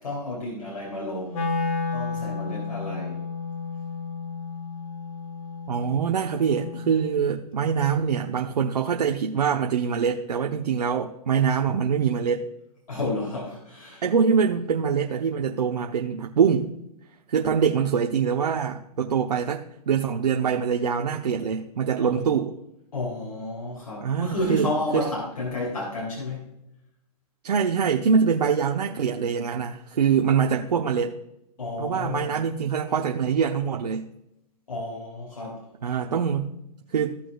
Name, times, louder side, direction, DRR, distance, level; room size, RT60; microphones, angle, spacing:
voice 1, 0.0-1.5 1.9-3.2 12.9-14.0 22.9-26.5 31.6-32.4 34.7-35.6, left 2 dB, 80° left, -2 dB, 3.1 m, -31 dB
Wind instrument woodwind instrument, 1.3-7.4, left 4 dB, 55° left, 1.6 m, -32 dB
voice 2, 5.7-12.5 14.0-16.7 17.3-22.5 24.0-24.7 24.9-25.1 27.4-31.1 31.8-34.1 35.8-36.5 36.9-37.1, right 6 dB, 80° right, 2 dB, 0.9 m, -24 dB
16.0 x 6.1 x 2.4 m, 0.82 s
hypercardioid pair, 135°, 21 cm